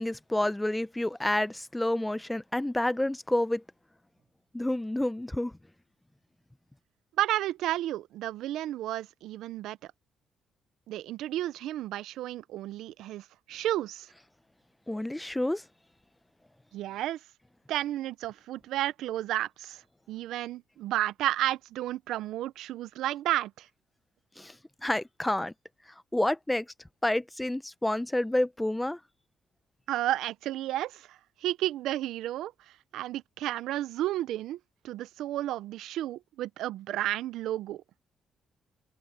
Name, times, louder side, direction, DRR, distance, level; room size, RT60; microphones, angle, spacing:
voice 1, 0.0-3.6 4.5-5.5 14.9-15.6 24.4-24.6 24.8-25.5 26.1-26.7 27.0-29.0, left 1 dB, 10° left, 0.8 m, -29 dB
voice 2, 7.2-9.8 10.9-14.1 16.7-17.2 17.7-19.8 20.1-23.7 29.9-32.5 32.9-34.6 34.8-37.8, right 14 dB, 85° right, 0.5 m, -32 dB
cardioid pair, 90°, 0 cm